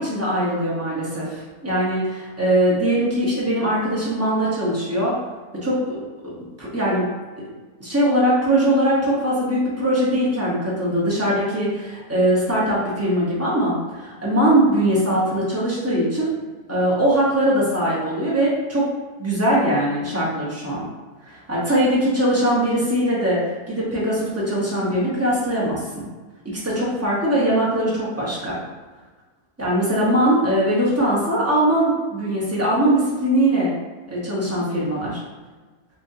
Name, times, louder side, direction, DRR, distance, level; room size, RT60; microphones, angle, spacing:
voice 1, 0.0-5.2 5.5-6.0 6.2-6.3 6.6-7.1 7.8-16.3 16.7-18.9 19.2-20.9 21.2-26.1 26.4-28.6 29.6-33.7 34.1-35.2, right 1 dB, 10° right, -7 dB, 0.9 m, -21 dB
4.4 x 2.7 x 2.7 m, 1.3 s
omnidirectional pair, 1.6 m